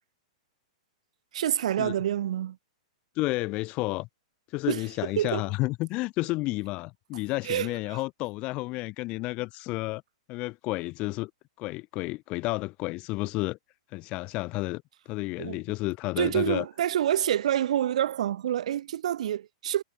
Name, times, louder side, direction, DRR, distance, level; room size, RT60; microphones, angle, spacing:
voice 1, 1.3-2.6 4.7-4.8 5.2-5.4 7.4-8.0 15.4-15.6 16.2-19.8, right 11 dB, 70° right, 0.8 m, -27 dB
voice 2, 3.2-4.1 4.5-10.0 10.3-11.3 11.6-13.6 13.9-14.8 15.1-16.7, left 21 dB, 30° left, 0.7 m, -31 dB
hypercardioid pair, 155°, 4 cm